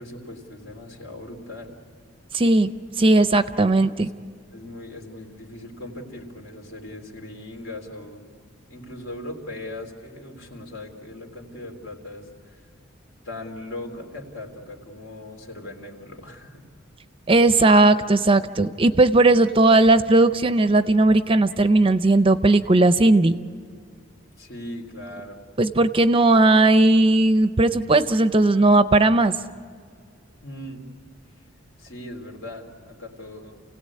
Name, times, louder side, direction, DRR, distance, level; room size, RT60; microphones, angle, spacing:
voice 1, 0.0-1.7 3.7-3.9 4.5-8.2 8.7-12.6 13.2-16.7 24.4-25.4 30.4-30.8 31.8-33.5, left 1 dB, 70° left, 2 dB, 3.3 m, -39 dB
voice 2, 2.3-2.7 3.0-4.1 17.3-23.4 25.6-29.3, right 2 dB, 25° right, 11 dB, 0.6 m, -17 dB
29.0 x 17.0 x 8.5 m, 2.1 s
head